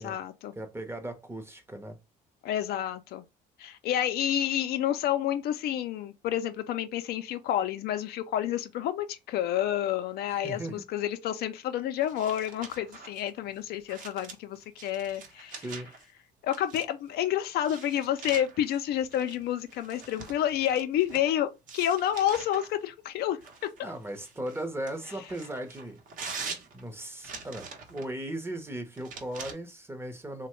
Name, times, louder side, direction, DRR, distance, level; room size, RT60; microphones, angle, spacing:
voice 1, 0.0-0.5 2.4-3.2 3.6-15.6 16.4-23.9, left 11 dB, 70° left, 0.4 m, -29 dB
voice 2, 0.6-2.0 10.3-10.8 15.5-15.9 23.8-26.0 26.7-30.5, right 1 dB, 15° right, 0.7 m, -37 dB
sound 1, 12.0-16.1 16.5-17.1 17.6-21.3 21.7-22.7 23.4-28.1 28.9-29.5, right 5 dB, 50° right, 0.8 m, -44 dB
3.0 x 2.1 x 2.9 m
cardioid pair, 110°, 17 cm